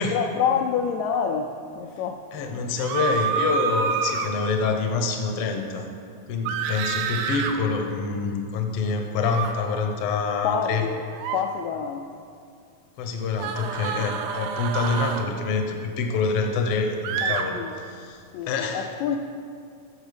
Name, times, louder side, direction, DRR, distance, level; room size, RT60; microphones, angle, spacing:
voice 1, 0.0-2.2 10.4-11.0 11.3-12.1 17.2-17.7 18.3-19.2, left 7 dB, 80° left, 3 dB, 1.7 m, -27 dB
voice 2, 2.3-5.9 6.3-10.8 13.0-19.0, left 4 dB, 60° left, 4 dB, 1.6 m, -26 dB
sound 1, 2.8-4.3 6.5-7.5 9.3-9.5 11.1-11.4 13.4-15.3 17.0-17.4, right 6 dB, 85° right, 2.2 m, -27 dB
sound 2, 7.3-9.3, equal, 60° right, 2.0 m, -45 dB
12.5 x 7.2 x 5.2 m, 2.3 s
omnidirectional pair, 3.4 m